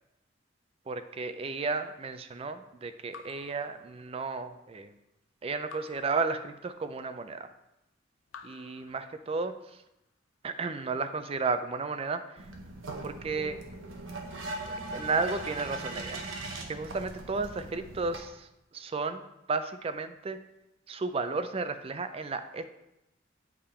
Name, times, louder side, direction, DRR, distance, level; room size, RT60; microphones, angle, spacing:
voice 1, 0.9-4.9 5.4-7.5 8.4-9.8 10.4-12.5 13.0-13.6 14.7-16.2 16.7-19.2 19.5-20.4 20.9-22.6, right 4 dB, 30° right, 10 dB, 0.3 m, -33 dB
Raindrop / Drip, 3.1-4.5 5.7-7.1 8.3-9.7, left 5 dB, 85° left, 0.5 m, -52 dB
sound 1, 12.4-18.2, right 2 dB, 90° right, 1.0 m, -40 dB
8.7 x 3.6 x 4.3 m, 0.90 s
head